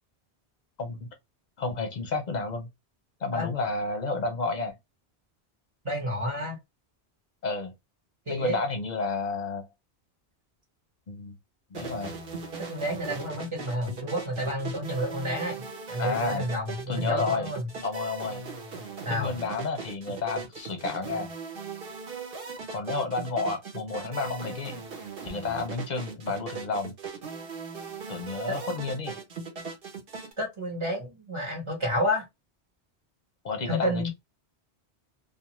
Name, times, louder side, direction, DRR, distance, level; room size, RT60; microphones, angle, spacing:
voice 1, 0.8-1.1 1.6-2.7 3.2-4.7 7.4-7.7 8.3-9.7 11.1-11.4 11.7-12.1 16.0-16.4 16.9-17.5 17.8-18.4 19.1-21.3 22.7-24.9 25.2-26.9 28.1-29.2 33.4-34.1, left 3 dB, 50° left, 0.6 m, -31 dB
voice 2, 5.8-6.6 8.3-8.6 12.6-17.7 19.0-19.3 30.4-32.2 33.6-34.1, equal, 30° right, 0.9 m, -30 dB
sound 1, 11.7-30.3, right 4 dB, 60° right, 1.0 m, -39 dB
2.4 x 2.4 x 2.9 m
omnidirectional pair, 1.1 m